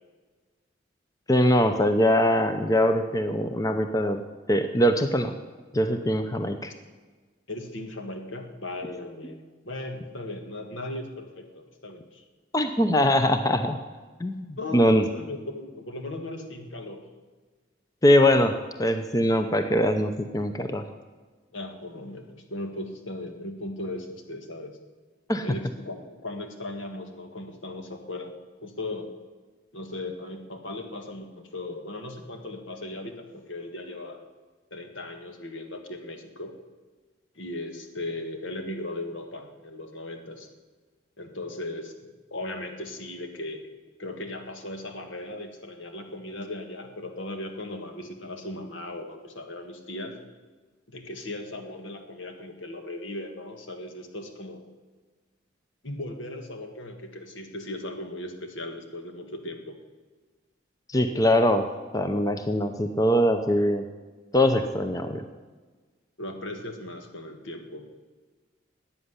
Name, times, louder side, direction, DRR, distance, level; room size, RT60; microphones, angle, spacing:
voice 1, 1.3-4.2 4.5-5.4 5.7-6.7 12.5-13.8 14.2-15.1 18.0-18.5 18.8-20.8 25.3-25.5 60.9-61.7 61.9-63.9 64.3-65.2, left 1 dB, 20° left, 7 dB, 0.6 m, -22 dB
voice 2, 7.5-12.2 14.6-17.1 21.5-24.8 25.4-29.1 29.7-34.2 34.7-36.5 37.4-40.5 41.2-41.9 42.3-43.6 44.0-50.2 50.9-54.6 55.8-59.8 66.2-67.9, left 1 dB, 75° left, 5 dB, 1.9 m, -37 dB
13.5 x 8.8 x 9.8 m, 1.4 s
head